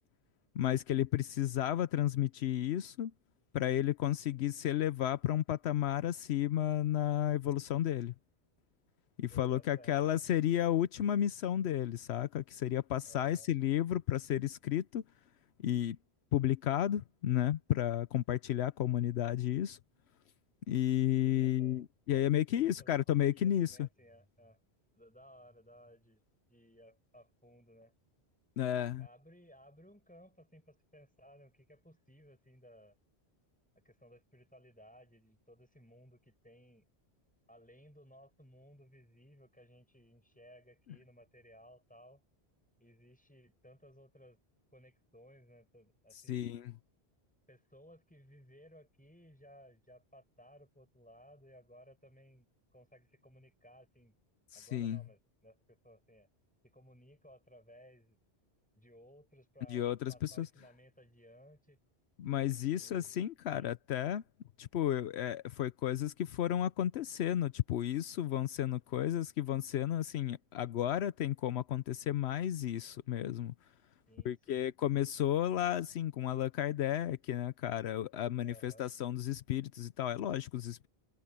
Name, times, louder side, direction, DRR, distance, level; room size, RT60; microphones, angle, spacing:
voice 1, 0.5-3.1 3.5-8.1 9.2-15.0 15.6-16.0 16.3-19.8 20.7-23.9 28.6-29.1 46.3-46.7 54.5-55.0 59.7-60.5 62.2-64.2 64.6-73.5 74.2-80.9, left 11 dB, 80° left, 0.9 m, -32 dB
voice 2, 9.3-10.2 13.1-13.5 21.2-21.8 22.8-24.6 24.9-26.2 26.5-27.9 28.8-33.0 33.8-36.8 37.5-42.2 42.8-44.4 44.7-46.4 47.5-54.2 54.5-56.3 56.6-58.2 58.8-61.8 62.5-63.2 63.5-63.7 74.1-74.7 78.4-78.9, equal, 5° left, 7.0 m, -60 dB
omnidirectional pair, 1.1 m